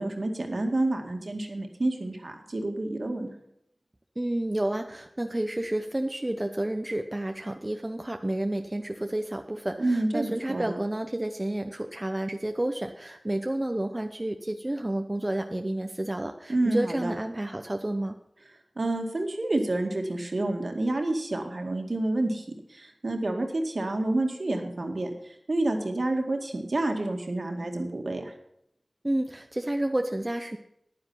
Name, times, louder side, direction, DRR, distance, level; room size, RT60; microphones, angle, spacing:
voice 1, 0.0-3.3 9.8-10.8 16.5-17.1 18.8-28.3, right 2 dB, 60° right, 3 dB, 2.1 m, -29 dB
voice 2, 4.2-18.2 29.0-30.6, right 1 dB, 25° right, 6 dB, 0.7 m, -30 dB
10.5 x 9.9 x 5.7 m, 0.77 s
wide cardioid pair, 70°, 0 cm